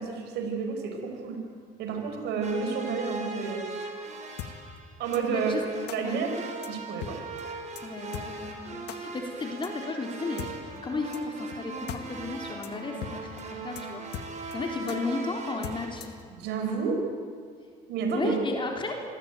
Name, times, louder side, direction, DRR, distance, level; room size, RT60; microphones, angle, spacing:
voice 1, 0.0-1.4 1.8-3.8 5.0-5.6 5.9-6.3 6.7-7.2 16.3-17.0 17.9-18.4, right 5 dB, 85° right, 4 dB, 5.0 m, -30 dB
sound 1, 2.4-16.0, right 3 dB, 45° right, 5.7 m, -40 dB
sound 2, 4.4-4.5 5.1-5.2 5.9-6.0 6.6-6.7 7.0-7.1 7.4-7.5 7.8-7.9 8.1-8.3 8.9-9.0 9.6-9.7 10.4-10.5 11.1-11.2 11.5-11.6 11.9-12.0 12.3-12.4 12.6-12.7 13.0-13.1 13.4-13.5 13.8-13.9 14.1-14.6 14.9-15.0 15.6-16.2, left 12 dB, 80° left, 2.1 m, -38 dB
voice 2, 5.3-5.6 6.0-6.2 7.8-10.5 10.8-14.0 14.5-16.1 18.1-19.0, left 3 dB, 30° left, 2 dB, 3.8 m, -34 dB
27.5 x 21.5 x 9.2 m, 2.2 s
cardioid pair, 110°, 17 cm